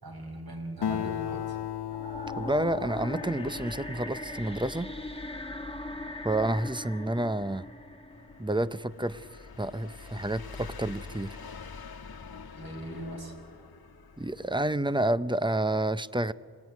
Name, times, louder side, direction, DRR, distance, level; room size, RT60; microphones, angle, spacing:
voice 1, 0.0-1.6 12.6-13.3, right 2 dB, 65° right, 1 dB, 5.5 m, -39 dB
Acoustic guitar, 0.8-4.6, left 10 dB, 85° left, 0.6 m, -36 dB
sound 1, 1.9-9.0, left 2 dB, 15° left, 1.5 m, -40 dB
voice 2, 2.4-4.9 6.2-7.7 8.4-11.4 14.2-16.3, right 1 dB, 10° right, 14 dB, 0.7 m, -29 dB
sound 2, 8.1-14.8, left 5 dB, 65° left, 1.5 m, -46 dB
27.0 x 19.0 x 9.5 m, 2.2 s
cardioid pair, 45°, 39 cm